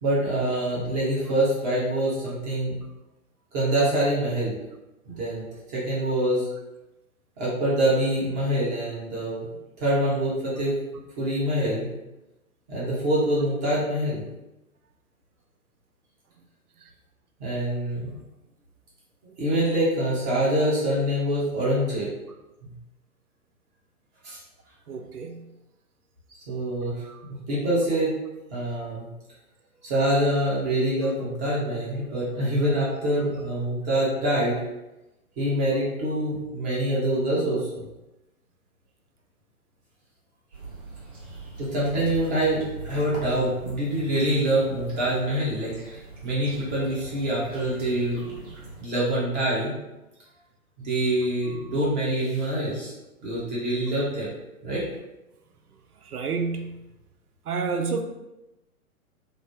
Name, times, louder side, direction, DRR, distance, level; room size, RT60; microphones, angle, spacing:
voice 1, 0.0-2.8 3.5-4.6 5.1-6.5 7.4-9.5 9.8-10.8 11.2-11.9 12.7-14.2 17.4-18.1 19.4-22.1 22.6-22.7 24.2-24.4 26.5-27.0 27.3-28.1 28.5-29.1 29.8-34.6 35.4-37.8 41.6-48.5 48.8-49.7 50.8-52.9 53.2-54.3 54.6-54.8, right 1 dB, 30° right, -7 dB, 1.0 m, -25 dB
voice 2, 24.9-25.5 27.0-27.2 51.6-51.7 56.0-56.9 57.4-58.0, right 5 dB, 90° right, 5 dB, 0.5 m, -30 dB
sound 1, 40.5-48.8, right 3 dB, 60° right, 1.5 m, -42 dB
3.1 x 2.1 x 2.7 m, 0.98 s
figure-of-eight pair, 120°, 44 cm